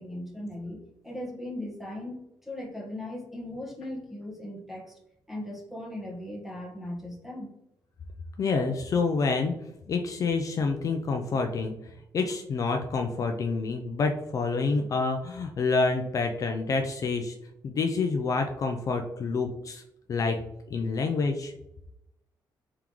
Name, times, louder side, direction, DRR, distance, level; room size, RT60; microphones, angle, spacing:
voice 1, 0.0-5.0 5.3-7.5, left 1 dB, 5° right, -3 dB, 1.3 m, -38 dB
voice 2, 8.4-9.5 9.9-17.3 17.6-19.8 20.1-20.4 20.7-21.5, left 4 dB, 45° left, 4 dB, 0.4 m, -28 dB
3.6 x 3.6 x 3.0 m, 0.83 s
cardioid pair, 140°, 8 cm